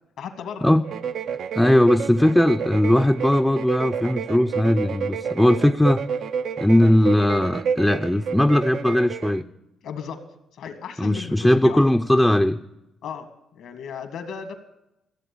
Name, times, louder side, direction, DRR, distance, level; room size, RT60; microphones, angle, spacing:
voice 1, 0.2-0.7 9.8-10.2 10.6-11.8 13.0-13.3 13.5-14.5, left 7 dB, 80° left, 7 dB, 1.9 m, -34 dB
sound 1, 0.8-9.4, right 7 dB, 70° right, 0.6 m, -30 dB
voice 2, 1.5-6.0 6.6-9.4 11.0-12.6, left 1 dB, 5° left, 6 dB, 0.5 m, -19 dB
15.0 x 7.9 x 8.4 m, 0.88 s
cardioid pair, 90°, 0 cm